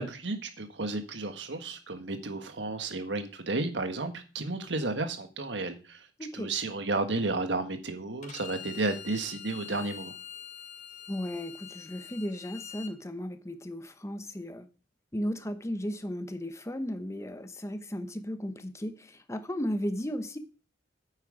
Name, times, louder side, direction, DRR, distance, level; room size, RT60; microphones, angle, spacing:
voice 1, 0.0-6.1 6.3-10.1, right 2 dB, 75° right, 1.6 m, -32 dB
voice 2, 6.2-6.5 11.1-14.7 15.1-20.4, equal, 15° left, 0.9 m, -35 dB
Bowed string instrument, 8.2-12.9, left 9 dB, 40° left, 1.0 m, -45 dB
9.2 x 8.1 x 5.0 m
head